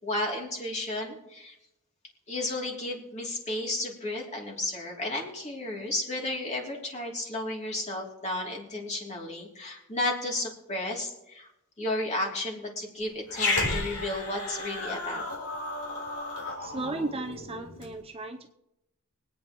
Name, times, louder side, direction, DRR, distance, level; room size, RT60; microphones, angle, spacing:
voice 1, 0.0-1.5 2.3-11.5 11.8-15.3, left 1 dB, 30° left, -1 dB, 3.0 m, -33 dB
Growling, 13.3-17.9, left 2 dB, 80° left, 4.0 m, -33 dB
voice 2, 16.6-18.5, right 2 dB, 25° right, 4 dB, 0.7 m, -35 dB
24.0 x 9.1 x 3.1 m, 0.87 s
head